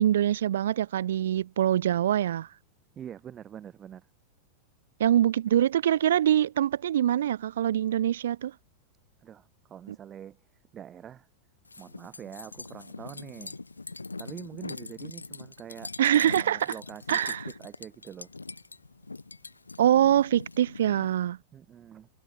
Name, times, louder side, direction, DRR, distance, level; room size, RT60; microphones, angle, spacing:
voice 1, 0.0-2.5 5.0-8.5 9.9-10.0 16.0-16.7 17.1-17.4 19.8-21.4, right 11 dB, 60° right, 0.6 m, -24 dB
voice 2, 3.0-4.1 9.2-10.4 10.7-11.3 11.8-13.6 14.2-17.2 17.5-18.3 21.5-22.1, right 9 dB, 25° right, 4.6 m, -45 dB
sound 1, 11.7-21.1, left 3 dB, 80° left, 7.3 m, -42 dB
figure-of-eight pair, 90°, 0 cm